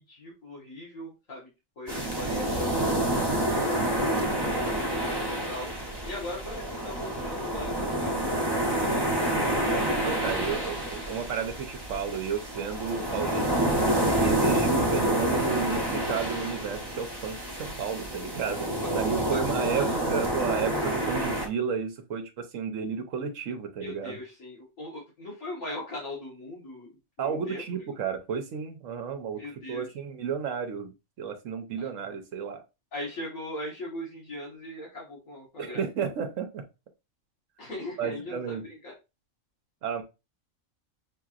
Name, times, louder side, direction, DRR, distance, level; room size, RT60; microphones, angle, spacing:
voice 1, 0.0-1.5 1.8-4.2 4.5-5.7 6.0-9.4 10.2-10.4 18.8-18.9 19.3-20.0 23.8-26.9 27.3-27.6 29.4-29.9 31.8-31.9 32.9-35.8 37.6-38.9, left 1 dB, 80° left, -4 dB, 1.8 m, -40 dB
sound 1, 1.9-21.5, right 1 dB, 20° right, 0.9 m, -28 dB
voice 2, 10.0-13.6 14.2-18.7 18.9-24.2 27.2-30.9 31.2-32.6 35.6-36.6 38.0-38.6 39.8-40.0, right 6 dB, 75° right, 6 dB, 1.2 m, -32 dB
6.3 x 2.9 x 2.5 m, 0.26 s
omnidirectional pair, 1.4 m